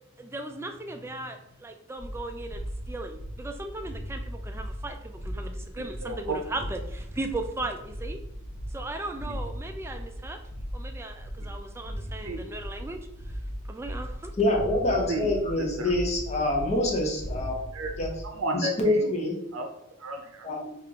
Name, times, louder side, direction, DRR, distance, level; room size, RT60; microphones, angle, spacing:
voice 1, 0.2-8.2 8.7-10.4 10.7-13.0 13.7-14.3, right 2 dB, 10° right, 5 dB, 0.3 m, -37 dB
sound 1, 2.0-18.2, equal, 65° left, 0.8 m, -38 dB
voice 2, 6.0-6.4 9.2-9.3 12.2-12.4 14.9-15.3 15.6-15.9 17.7-18.0 18.2-19.2 19.5-19.7 20.0-20.5, right 2 dB, 85° right, 5 dB, 0.6 m, -33 dB
voice 3, 14.4-17.6 18.0-18.1 18.8-19.3 20.4-20.8, left 1 dB, 30° left, 0 dB, 0.8 m, -26 dB
5.7 x 2.5 x 2.8 m, 0.83 s
head